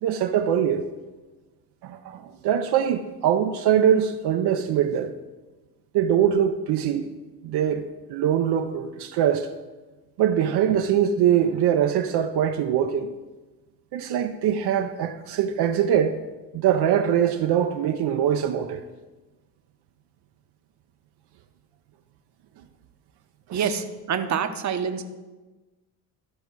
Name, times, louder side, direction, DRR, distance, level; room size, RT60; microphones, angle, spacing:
voice 1, 0.0-0.9 1.8-5.1 5.9-7.1 7.4-9.5 10.2-13.1 13.9-16.2 16.5-18.8 23.5-23.7, right 9 dB, 75° right, 0.7 m, -23 dB
voice 2, 23.5-25.0, right 7 dB, 45° right, 0.8 m, -26 dB
13.0 x 5.2 x 4.6 m
cardioid pair, 95°, 40 cm